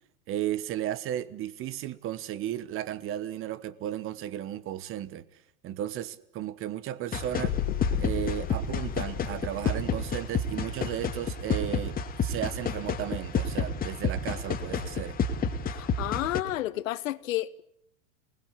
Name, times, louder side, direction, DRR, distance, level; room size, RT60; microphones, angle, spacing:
voice 1, 0.3-5.3 5.6-7.6 8.0-15.2, right 12 dB, 30° right, 1.2 m, -34 dB
sound 1, 7.1-16.4, left 4 dB, 20° left, 2.6 m, -30 dB
sound 2, 7.4-11.4, left 13 dB, 45° left, 2.5 m, -35 dB
voice 2, 15.7-17.6, left 15 dB, 70° left, 1.3 m, -31 dB
28.5 x 20.5 x 8.3 m
hypercardioid pair, 125°, 41 cm